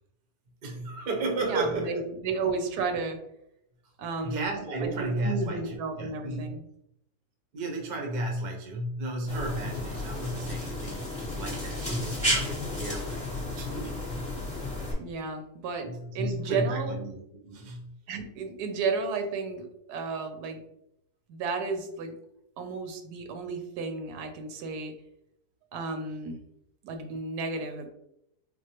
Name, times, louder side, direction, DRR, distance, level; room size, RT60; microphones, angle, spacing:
voice 1, 0.6-2.0 4.2-6.6 7.5-13.3 13.6-13.9 15.8-17.9, right 2 dB, 50° right, 1 dB, 0.7 m, -33 dB
voice 2, 1.4-3.2 4.0-4.4 4.8-4.9 5.2-6.6 15.0-16.9 18.1-20.6 21.3-22.1 22.6-24.9 25.7-26.4 26.8-27.9, right 4 dB, 85° right, 6 dB, 1.2 m, -33 dB
sound 1, 9.3-14.9, left 1 dB, 5° left, 0.9 m, -32 dB
4.4 x 2.2 x 2.8 m, 0.78 s
omnidirectional pair, 1.7 m